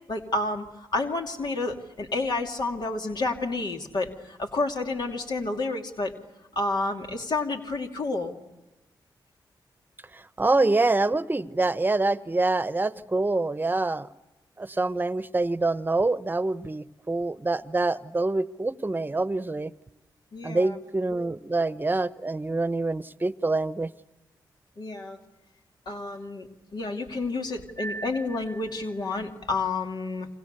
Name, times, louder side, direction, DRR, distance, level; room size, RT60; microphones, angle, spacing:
voice 1, 0.1-0.6 0.9-6.1 6.6-8.3 20.3-20.8 24.8-25.2 25.9-30.3, left 3 dB, 60° left, 3 dB, 2.7 m, -30 dB
voice 2, 10.1-14.1 14.6-19.7 20.4-23.9, right 2 dB, 25° right, 15 dB, 1.0 m, -26 dB
28.5 x 26.0 x 6.8 m, 1.1 s
cardioid pair, 60°, 8 cm